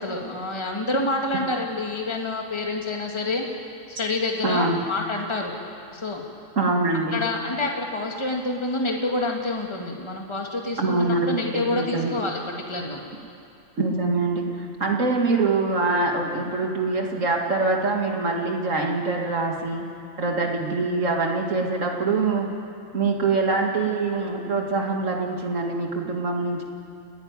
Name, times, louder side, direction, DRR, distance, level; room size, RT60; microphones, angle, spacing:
voice 1, 0.0-3.4 3.9-5.5 5.9-6.2 7.1-12.4 12.7-13.0, left 2 dB, 20° left, 1 dB, 2.0 m, -27 dB
voice 2, 4.4-4.8 6.6-7.2 10.8-12.1 13.8-19.8 20.2-22.5 22.9-26.6, right 3 dB, 75° right, 1 dB, 2.4 m, -24 dB
29.5 x 9.9 x 9.7 m, 2.6 s
omnidirectional pair, 1.3 m